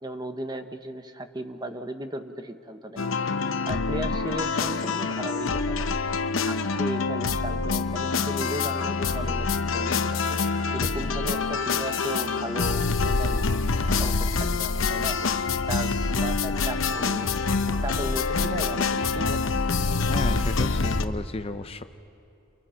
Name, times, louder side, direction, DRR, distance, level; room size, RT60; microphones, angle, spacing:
voice 1, 0.0-3.0 3.7-5.9 6.5-9.5 9.7-10.2 10.7-13.4 14.0-15.2 15.7-19.4, right 1 dB, 20° right, 7 dB, 1.0 m, -36 dB
sound 1, 3.0-21.0, left 4 dB, 80° left, 0.9 m, -26 dB
voice 2, 20.1-21.8, left 2 dB, 30° left, 9 dB, 0.6 m, -32 dB
29.5 x 29.0 x 5.7 m, 2.7 s
head